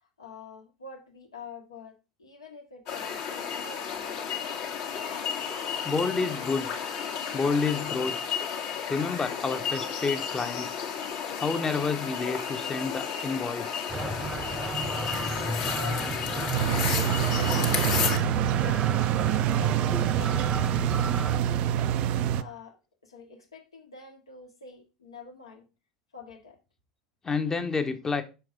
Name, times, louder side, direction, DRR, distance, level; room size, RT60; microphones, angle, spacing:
voice 1, 0.0-4.6 15.7-16.5 16.8-21.0 21.5-22.8 23.0-25.6 26.1-26.6, left 5 dB, 80° left, 1.5 m, -47 dB
sound 1, 2.9-18.2, left 7 dB, 55° left, 1.4 m, -32 dB
voice 2, 5.8-6.7 7.3-8.1 8.9-10.7 11.4-13.8 19.9-20.0 20.8-21.0 27.2-28.2, left 4 dB, 20° left, 0.9 m, -29 dB
sound 2, 13.9-21.4, right 3 dB, 15° right, 0.8 m, -34 dB
sound 3, 16.5-22.4, right 10 dB, 45° right, 0.4 m, -26 dB
6.0 x 4.5 x 5.0 m
figure-of-eight pair, 75°, 3 cm